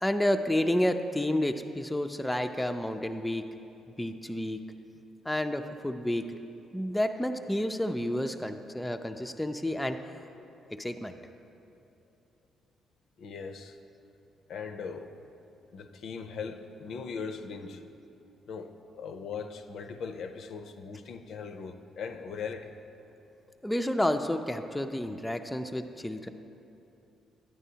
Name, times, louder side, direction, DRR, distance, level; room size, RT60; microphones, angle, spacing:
voice 1, 0.0-3.4 4.0-4.6 5.2-6.3 6.7-10.0 10.7-11.2 23.6-26.3, left 1 dB, 5° left, 6 dB, 0.3 m, -30 dB
voice 2, 13.2-13.8 14.5-15.1 15.7-17.8 18.5-22.7, left 5 dB, 70° left, 7 dB, 0.4 m, -39 dB
9.9 x 8.9 x 2.8 m, 2.8 s
cardioid pair, 90°, 0 cm